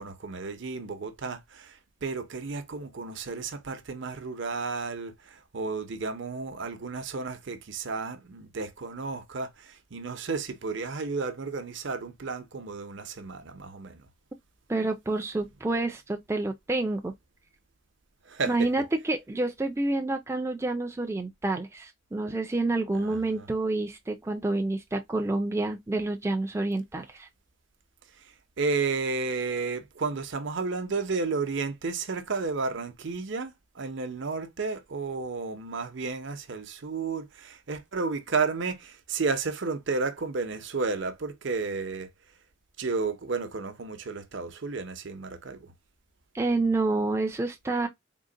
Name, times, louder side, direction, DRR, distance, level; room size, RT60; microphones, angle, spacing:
voice 1, 0.0-14.1 18.3-18.7 22.9-23.5 28.6-42.1 42.8-45.7, right 4 dB, 60° right, 0.7 m, -32 dB
voice 2, 14.7-17.1 18.5-27.3 46.3-47.9, right 2 dB, 15° right, 0.3 m, -28 dB
3.7 x 2.1 x 3.8 m
head